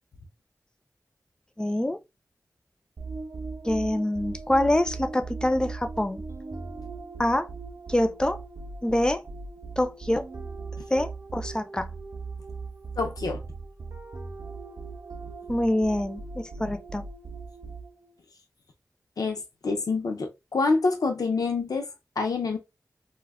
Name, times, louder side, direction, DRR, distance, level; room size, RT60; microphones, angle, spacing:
voice 1, 1.6-2.0 3.6-6.2 7.2-7.5 7.9-8.4 8.8-9.2 9.8-10.2 10.9-11.9 15.5-17.0, left 1 dB, 15° left, 0.4 m, -25 dB
sound 1, 3.0-18.1, right 4 dB, 55° right, 0.5 m, -39 dB
voice 2, 13.0-13.4 19.2-21.9 22.2-22.6, left 3 dB, 85° left, 0.6 m, -26 dB
2.2 x 2.0 x 3.4 m
wide cardioid pair, 60°, 6 cm